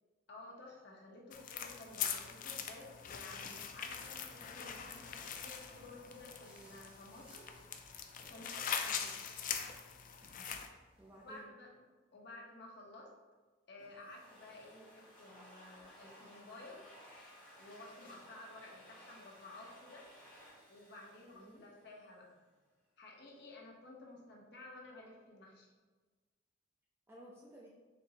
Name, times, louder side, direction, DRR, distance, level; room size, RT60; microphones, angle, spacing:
voice 1, 0.3-7.5 8.2-8.9 11.2-11.7 12.1-13.1 13.7-16.8 17.6-20.0 20.7-22.3 23.0-25.7, left 2 dB, 60° left, -2 dB, 0.9 m, -53 dB
sound 1, 1.3-10.7, left 7 dB, 45° left, 0.3 m, -42 dB
sound 2, 3.1-11.4, right 1 dB, 30° right, 1.0 m, -64 dB
voice 2, 8.8-9.3 11.0-11.5 21.3-21.6 27.1-27.7, right 1 dB, 15° right, -4 dB, 0.4 m, -56 dB
Domestic sounds home sounds, 13.8-22.2, equal, 10° left, 1.3 m, -59 dB
4.3 x 3.1 x 2.8 m, 1.3 s
head